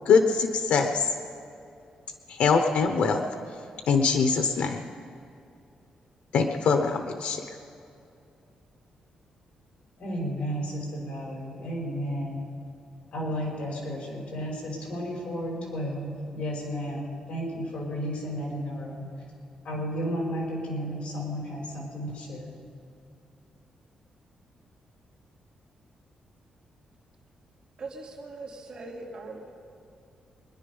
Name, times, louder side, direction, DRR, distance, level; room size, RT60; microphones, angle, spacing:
voice 1, 0.1-1.1 2.3-3.2 3.9-4.8 6.3-7.4, left 5 dB, 90° left, 5 dB, 1.0 m, -23 dB
voice 2, 10.0-12.4 13.1-19.1 19.6-22.5, equal, 60° left, -1 dB, 5.3 m, -33 dB
voice 3, 27.8-29.5, right 3 dB, 40° right, -2 dB, 3.1 m, -40 dB
24.0 x 10.5 x 5.5 m, 2.6 s
wide cardioid pair, 145°, 2 cm